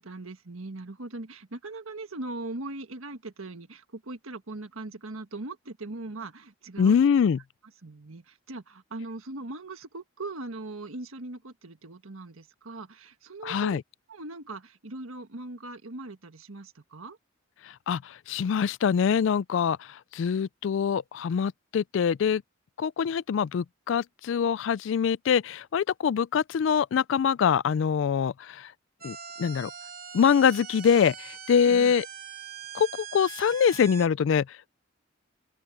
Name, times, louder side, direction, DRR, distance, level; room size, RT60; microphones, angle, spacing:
voice 1, 0.0-7.0 7.8-13.8 14.1-17.2 31.6-31.9, right 2 dB, 90° right, 1.6 m, -40 dB
voice 2, 6.8-7.4 13.4-13.8 17.9-19.8 20.1-22.4 22.8-28.7 29.0-29.7 30.1-32.1 32.7-34.5, left 7 dB, 65° left, 0.3 m, -24 dB
sound 1, 29.0-34.1, right 8 dB, 45° right, 3.7 m, -42 dB
open air
head